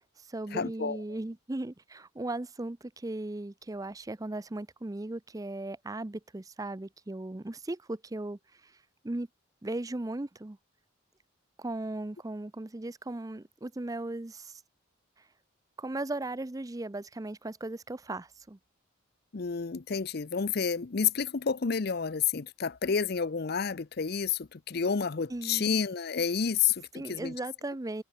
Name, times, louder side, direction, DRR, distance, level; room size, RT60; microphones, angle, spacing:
voice 1, 0.0-8.7 9.0-9.3 9.6-10.6 11.6-14.6 15.8-18.6 25.3-25.8 26.9-28.0, right 2 dB, 15° right, 0.5 m, -37 dB
voice 2, 0.5-1.0 19.3-27.3, left 6 dB, 50° left, 0.6 m, -30 dB
head